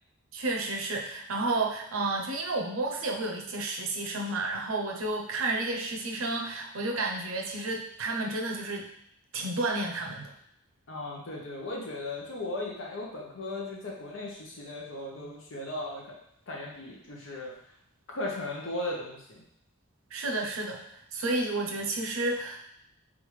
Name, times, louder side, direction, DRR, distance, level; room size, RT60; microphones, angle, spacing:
voice 1, 0.3-8.9 9.3-10.3 20.1-20.8 21.1-22.6, right 2 dB, 90° right, 1 dB, 0.7 m, -31 dB
voice 2, 10.9-16.0 16.5-17.5 18.1-19.4, left 2 dB, 65° left, -2 dB, 0.9 m, -37 dB
3.8 x 3.5 x 3.2 m, 0.73 s
head